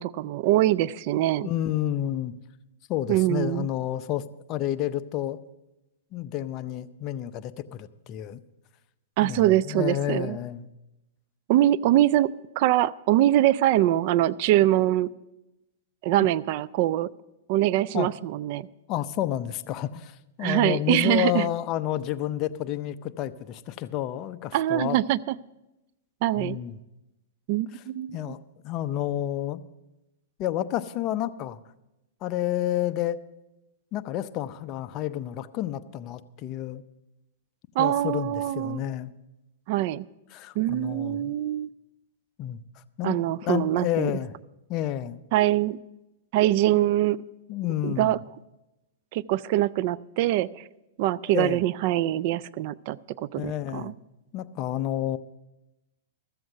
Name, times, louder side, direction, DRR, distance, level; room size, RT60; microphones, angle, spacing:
voice 1, 0.0-1.5 3.1-3.7 9.2-10.4 11.5-15.1 16.0-17.1 17.5-18.7 20.4-21.5 24.5-25.3 26.2-26.6 27.5-28.3 37.8-38.8 39.7-40.1 40.6-41.7 43.0-44.1 45.3-45.8 46.3-47.2 47.8-48.2 49.1-50.6 51.0-53.9, right 14 dB, 50° right, 20 dB, 0.3 m, -23 dB
voice 2, 1.4-2.3 2.9-4.2 4.5-5.4 6.1-8.4 9.2-10.7 17.9-18.1 18.9-25.0 26.4-26.8 28.1-28.4 28.6-29.6 30.4-31.6 32.2-33.2 33.9-36.8 37.8-39.1 40.3-41.3 42.4-42.6 43.0-43.2 43.4-44.4 44.7-45.2 47.5-48.2 51.3-51.6 53.3-54.0 54.3-55.2, left 12 dB, 35° left, 11 dB, 0.5 m, -30 dB
13.5 x 7.8 x 6.6 m, 0.98 s
hypercardioid pair, 135°, 0 cm